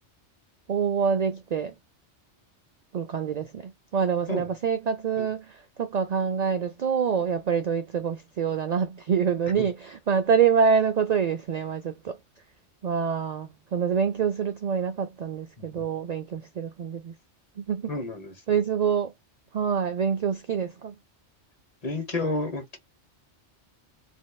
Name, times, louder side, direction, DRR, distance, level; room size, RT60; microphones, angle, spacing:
voice 1, 0.7-1.7 2.9-12.2 12.8-17.1 17.6-17.9 18.5-19.1 19.5-20.9, right 6 dB, 65° right, 0.4 m, -26 dB
voice 2, 17.9-18.3 21.8-22.8, left 2 dB, 35° left, 1.2 m, -31 dB
3.5 x 3.1 x 2.2 m
omnidirectional pair, 1.2 m